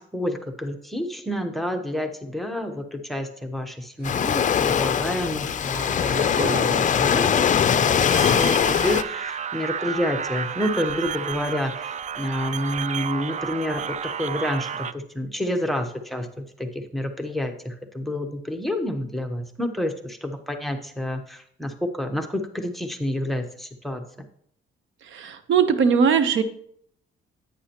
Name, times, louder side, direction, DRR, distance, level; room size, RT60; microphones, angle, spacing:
voice 1, 0.0-24.0, left 1 dB, ahead, 7 dB, 1.1 m, -29 dB
Waves surf, 4.0-9.0, left 8 dB, 40° left, 0.5 m, -21 dB
sound 1, 4.0-7.7 8.1-8.8, right 2 dB, 55° right, 2.0 m, -36 dB
sound 2, 8.1-14.9, right 7 dB, 35° right, 0.5 m, -31 dB
voice 2, 25.0-26.4, right 6 dB, 75° right, 10 dB, 1.0 m, -20 dB
10.5 x 8.7 x 3.0 m, 0.67 s
cardioid pair, 90°, 20 cm